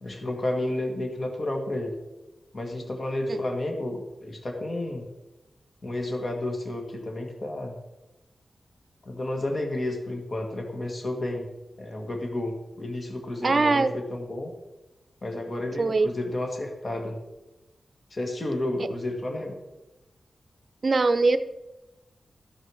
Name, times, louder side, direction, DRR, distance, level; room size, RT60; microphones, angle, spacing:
voice 1, 0.0-2.0 2.5-5.1 5.8-7.8 9.0-11.5 11.8-14.5 15.2-17.2 18.1-19.6, left 1 dB, 40° left, 2 dB, 1.9 m, -31 dB
voice 2, 13.4-13.9 15.8-16.1 20.8-21.4, right 3 dB, 40° right, 11 dB, 0.7 m, -21 dB
13.5 x 6.5 x 6.4 m, 1.0 s
wide cardioid pair, 125°, 0 cm